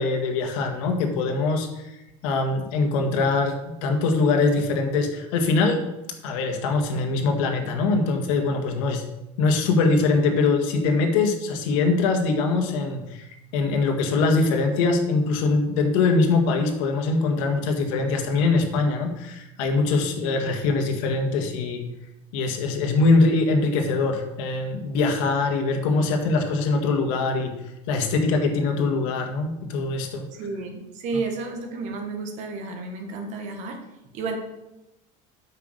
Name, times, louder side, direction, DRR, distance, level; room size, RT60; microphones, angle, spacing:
voice 1, 0.0-1.7 2.2-5.8 6.2-9.0 9.4-13.0 13.5-21.8 22.3-27.5 27.9-30.3, left 3 dB, 75° left, 4 dB, 1.9 m, -22 dB
voice 2, 30.3-33.8 34.1-34.4, right 3 dB, 45° right, 4 dB, 1.5 m, -31 dB
8.2 x 5.9 x 6.6 m, 0.93 s
cardioid pair, 165°, 17 cm